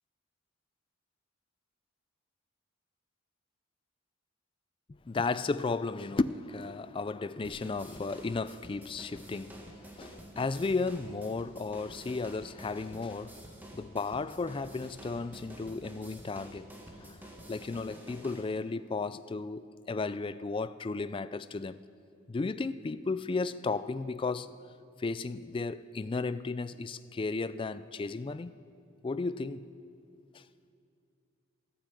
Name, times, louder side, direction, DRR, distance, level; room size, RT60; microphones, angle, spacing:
voice 1, 5.1-13.4 13.7-16.7 17.0-21.8 22.3-24.5 25.0-28.5 29.0-29.7 30.3-30.4, left 3 dB, 25° left, 0.3 m, -34 dB
sound 1, 7.4-18.4, right 1 dB, 10° right, 1.6 m, -49 dB
15.0 x 10.0 x 8.4 m
head